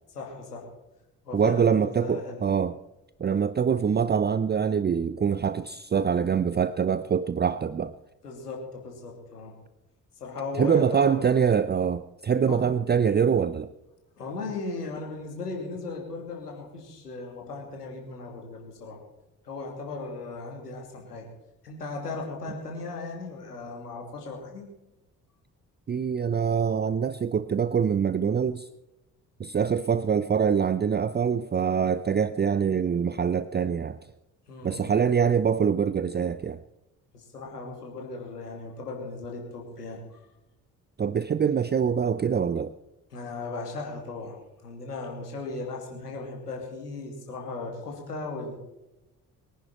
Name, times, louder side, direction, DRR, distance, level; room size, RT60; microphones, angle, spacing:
voice 1, 0.1-0.7 1.2-2.5 8.2-9.5 10.2-11.4 12.5-12.6 14.2-19.0 19.4-21.3 21.6-24.6 34.5-35.0 37.1-40.2 43.1-44.4 44.6-48.6, left 3 dB, 85° left, 2.8 m, -37 dB
voice 2, 1.3-2.8 3.2-8.0 10.6-13.7 25.9-28.7 29.4-34.0 34.6-36.6 41.0-42.7, right 7 dB, 20° right, 0.6 m, -24 dB
23.5 x 10.5 x 4.4 m
figure-of-eight pair, 45°, 46 cm